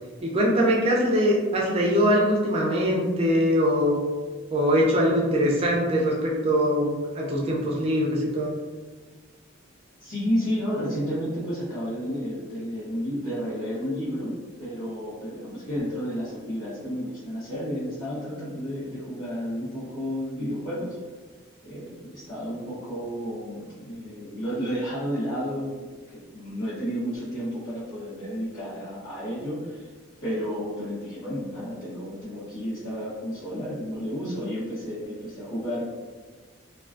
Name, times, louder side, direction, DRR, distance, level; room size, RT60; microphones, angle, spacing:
voice 1, 0.2-4.0 4.5-8.5, equal, 30° right, -2 dB, 0.4 m, -22 dB
voice 2, 10.0-14.3 14.6-21.0 21.6-25.8 26.1-29.9 30.2-35.8, equal, 65° left, -14 dB, 1.0 m, -31 dB
2.2 x 2.2 x 2.4 m, 1.4 s
head